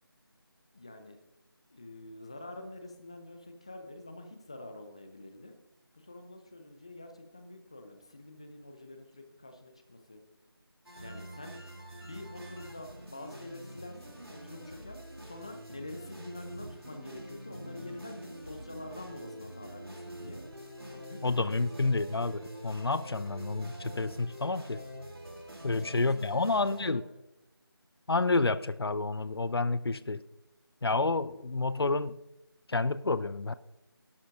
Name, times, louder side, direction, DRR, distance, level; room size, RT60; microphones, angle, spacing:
voice 1, 0.7-1.2 1.7-5.5 5.9-10.2 11.0-11.6 11.9-20.4 20.9-21.6 25.6-26.5 26.8-27.0, left 2 dB, 15° left, 6 dB, 0.6 m, -46 dB
sound 1, 10.8-26.9, equal, 80° right, 2.8 m, -46 dB
voice 2, 21.2-24.8 25.6-27.0 28.1-30.2 30.8-32.2 32.7-33.5, left 3 dB, 80° left, 15 dB, 0.5 m, -29 dB
17.5 x 11.5 x 2.6 m, 0.90 s
figure-of-eight pair, 170°, 13 cm